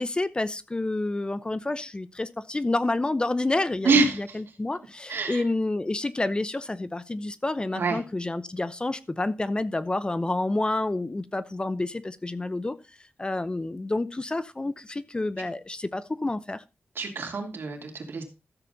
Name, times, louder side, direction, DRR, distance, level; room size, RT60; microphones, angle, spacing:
voice 1, 0.0-12.8 13.2-16.6, left 2 dB, 25° left, 0.7 m, -29 dB
voice 2, 3.8-4.4 5.1-5.4 7.7-8.0 16.9-18.2, right 3 dB, 75° right, 2.9 m, -25 dB
13.5 x 7.4 x 4.0 m
wide cardioid pair, 85°, 4 cm